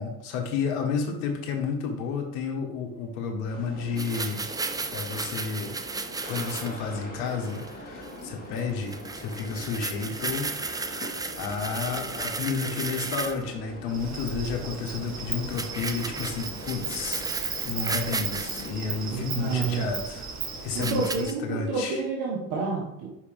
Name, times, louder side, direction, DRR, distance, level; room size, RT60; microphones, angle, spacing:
voice 1, 0.0-4.4 4.9-5.7 6.3-17.3 17.6-20.4 20.6-22.0, left 5 dB, 75° left, 4 dB, 1.3 m, -31 dB
sound 1, 3.5-20.0, equal, 20° left, 2.3 m, -42 dB
sound 2, 4.0-6.8 7.3-7.7 8.0-8.2 8.6-8.7 8.9-13.4 15.5-18.7 19.5-19.6 20.8-21.3, right 3 dB, 10° right, 0.3 m, -34 dB
Insect, 13.9-21.3, right 5 dB, 35° right, 1.3 m, -36 dB
voice 2, 19.1-19.9 20.7-23.1, right 4 dB, 65° right, -3 dB, 1.4 m, -29 dB
5.5 x 5.0 x 3.4 m, 0.82 s
hypercardioid pair, 60°, 45 cm